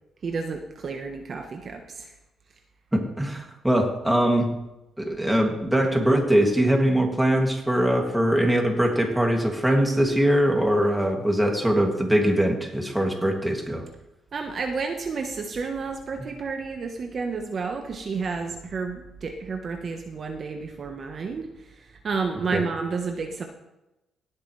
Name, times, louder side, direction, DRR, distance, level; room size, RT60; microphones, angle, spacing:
voice 1, 0.2-2.1 14.3-21.5 22.0-23.4, right 4 dB, 45° right, 4 dB, 1.1 m, -31 dB
voice 2, 2.9-4.5 5.0-13.8 22.5-22.6, right 1 dB, 5° right, 1 dB, 2.4 m, -22 dB
18.0 x 8.1 x 3.3 m, 0.95 s
cardioid pair, 90°, 0 cm